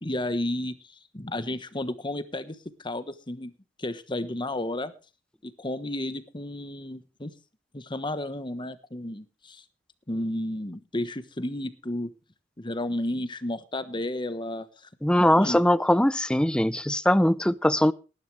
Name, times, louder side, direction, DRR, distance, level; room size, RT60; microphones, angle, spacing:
voice 1, 0.0-3.5 3.8-4.9 5.4-7.3 7.7-9.6 10.1-12.1 12.6-14.9 15.1-15.6, left 1 dB, 25° left, 12 dB, 1.2 m, -32 dB
voice 2, 15.0-17.9, left 1 dB, 5° left, 17 dB, 0.5 m, -21 dB
18.5 x 11.0 x 3.3 m, 0.33 s
head